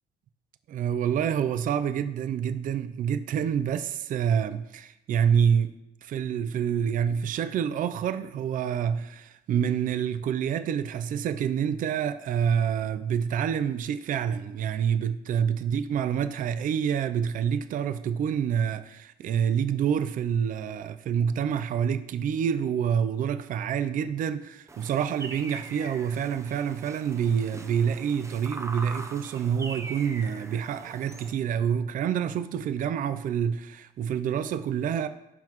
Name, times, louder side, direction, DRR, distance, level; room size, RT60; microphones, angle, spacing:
voice 1, 0.7-5.8 6.0-35.1, right 8 dB, 55° right, 0.5 m, -27 dB
sound 1, 24.7-31.3, right 2 dB, 15° right, 0.8 m, -42 dB
15.0 x 5.8 x 3.0 m
cardioid pair, 110°, 17 cm